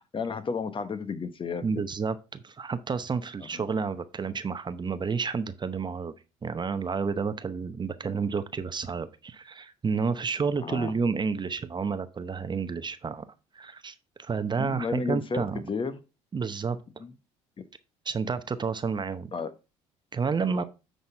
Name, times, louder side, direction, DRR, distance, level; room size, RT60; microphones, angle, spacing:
voice 1, 0.1-1.8 3.4-3.6 8.1-8.3 10.6-10.9 14.6-16.0 17.0-17.1 17.6-17.7 19.3-19.5 20.5-20.6, left 5 dB, 35° left, 11 dB, 1.1 m, -33 dB
voice 2, 1.6-6.1 6.4-15.7 16.3-16.8 18.0-19.3 20.1-20.6, right 5 dB, 30° right, 12 dB, 0.8 m, -30 dB
9.6 x 4.1 x 4.4 m, 0.29 s
hypercardioid pair, 60°, 15 cm